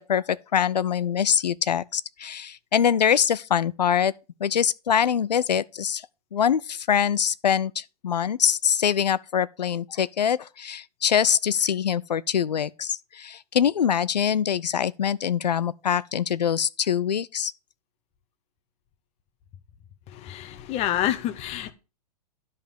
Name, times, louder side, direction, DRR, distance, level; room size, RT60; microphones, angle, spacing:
voice 1, 0.0-4.1 4.4-6.1 6.3-17.5, left 8 dB, 85° left, 0.4 m, -24 dB
voice 2, 20.1-21.7, left 12 dB, 30° left, 1.0 m, -28 dB
10.0 x 5.3 x 5.0 m
hypercardioid pair, 115°, 21 cm